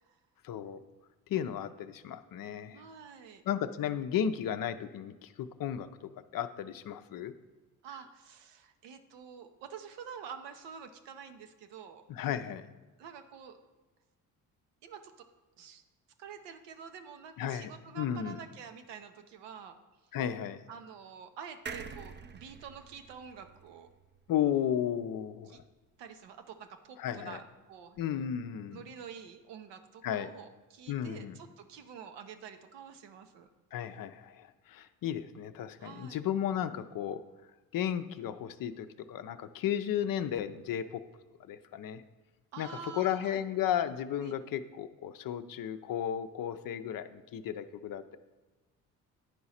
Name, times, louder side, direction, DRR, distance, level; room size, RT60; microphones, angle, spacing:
voice 1, 0.4-0.8 1.3-2.8 3.5-5.9 6.3-7.3 12.1-12.7 17.4-18.4 20.1-20.6 24.3-25.6 27.0-27.4 28.0-28.8 30.0-30.3 30.9-31.4 33.7-37.2 37.7-41.0 41.5-42.0 42.6-42.7 42.9-48.2, left 9 dB, 50° left, 10 dB, 0.6 m, -34 dB
voice 2, 2.7-3.4 7.8-12.0 13.0-13.6 14.8-15.3 15.6-15.8 16.2-19.7 20.7-23.9 25.5-25.6 26.0-28.0 28.7-33.5 35.8-36.2 42.5-43.4 44.2-44.4, right 7 dB, 75° right, 7 dB, 0.9 m, -48 dB
sound 1, 21.7-25.1 25.5-25.6 25.8-25.9, right 5 dB, 25° right, 0.6 m, -47 dB
9.9 x 4.7 x 4.2 m, 1.2 s
hypercardioid pair, 55°, 43 cm